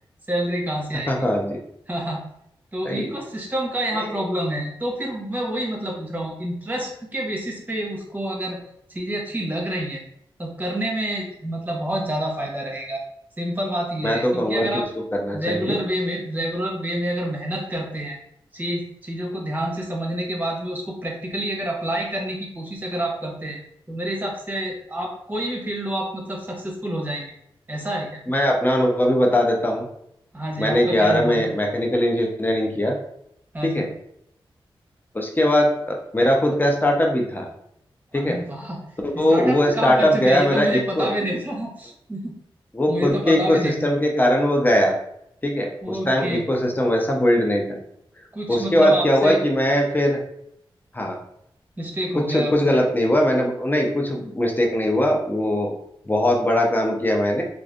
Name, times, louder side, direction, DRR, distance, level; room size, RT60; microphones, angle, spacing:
voice 1, 0.3-1.1 1.9-2.2 2.7-8.6 8.9-10.0 10.4-13.0 13.4-14.9 15.3-18.2 18.5-23.6 23.9-27.3 27.7-28.1 30.3-31.5 33.5-33.9 38.1-42.3 42.9-43.9 45.8-46.4 48.3-49.4 51.8-52.8, right 1 dB, 20° right, 0 dB, 1.0 m, -28 dB
voice 2, 1.1-1.6 2.8-3.1 4.0-4.2 14.0-14.8 15.1-15.8 28.3-29.9 30.6-32.9 33.6-33.9 35.1-37.5 38.1-38.4 39.0-41.1 42.7-44.9 45.4-47.6 48.5-50.2 50.9-51.2 52.3-55.7 56.1-57.4, equal, 20° left, 1 dB, 0.7 m, -20 dB
3.1 x 2.5 x 2.5 m, 0.74 s
cardioid pair, 45°, 10 cm